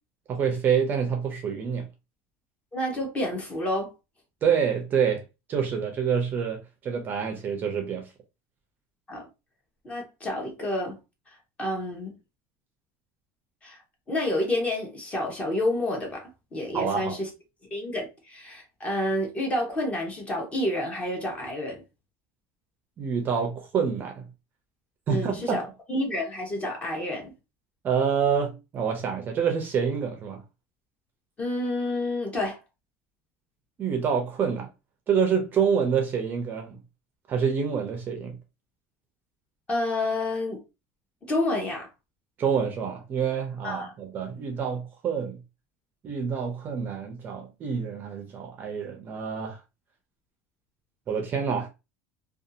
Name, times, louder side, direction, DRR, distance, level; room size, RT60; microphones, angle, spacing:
voice 1, 0.3-1.9 4.4-5.2 5.5-8.1 16.7-17.2 23.0-24.2 25.1-25.6 27.8-30.4 33.8-34.7 35.1-36.8 37.3-38.4 42.4-45.4 46.0-49.6 51.1-51.7, right 7 dB, 30° right, 0.5 m, -27 dB
voice 2, 2.7-3.9 9.1-9.3 9.8-11.0 11.6-12.1 13.6-13.8 14.1-17.3 17.7-21.8 25.1-27.3 31.4-32.6 39.7-40.6 41.3-41.9 43.6-43.9, left 1 dB, 20° left, 0.8 m, -29 dB
2.6 x 2.3 x 2.6 m
cardioid pair, 155°, 7 cm